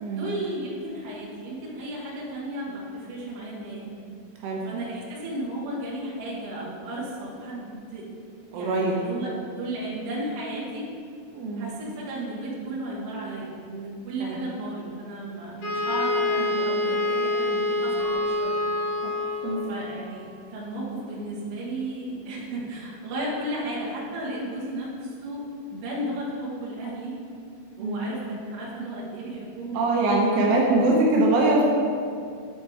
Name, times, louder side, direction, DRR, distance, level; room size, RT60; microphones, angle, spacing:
voice 1, 0.1-3.9 4.6-8.1 8.5-10.9 11.6-19.0 19.6-20.2 20.5-25.4 25.7-27.2 27.8-30.8, right 1 dB, 60° right, -6 dB, 2.5 m, -34 dB
voice 2, 8.5-8.9 11.3-11.7 19.0-19.1 19.4-19.6 27.8-28.1 29.7-31.6, right 2 dB, 80° right, -2 dB, 2.9 m, -22 dB
Wind instrument woodwind instrument, 15.6-19.6, left 2 dB, 55° left, 3.1 m, -26 dB
Keyboard (musical) / Bell, 18.0-20.4, right 2 dB, 80° left, 3.8 m, -38 dB
8.0 x 4.3 x 4.6 m, 2.3 s
omnidirectional pair, 5.0 m